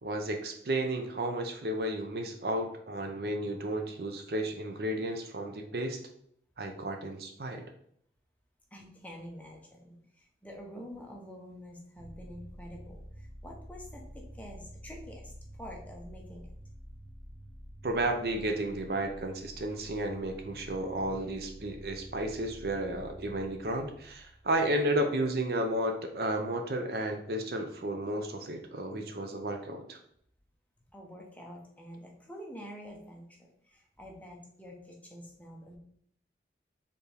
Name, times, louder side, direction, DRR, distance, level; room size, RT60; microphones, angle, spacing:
voice 1, 0.0-6.0 6.6-7.6 17.8-30.0, right 1 dB, 60° right, 5 dB, 0.6 m, -33 dB
voice 2, 8.7-16.5 30.9-35.8, equal, 10° left, 0 dB, 0.8 m, -47 dB
sound 1, 12.0-25.4, equal, 90° right, 1.1 m, -49 dB
4.5 x 3.5 x 3.4 m, 0.67 s
head